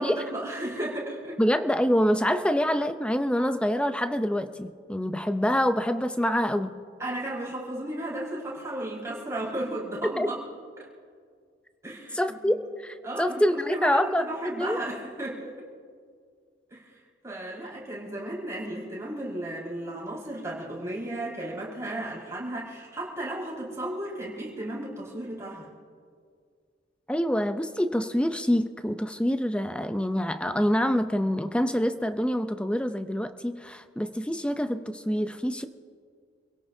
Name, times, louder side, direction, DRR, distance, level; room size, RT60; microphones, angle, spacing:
voice 1, 0.0-1.4 7.0-10.3 11.8-12.5 13.0-15.6 16.7-17.0 17.2-25.7, right 1 dB, 15° right, -6 dB, 5.2 m, -34 dB
voice 2, 1.4-6.8 10.2-10.3 12.1-14.8 27.1-35.6, equal, 5° left, 9 dB, 0.6 m, -26 dB
28.5 x 17.0 x 2.7 m, 2.1 s
head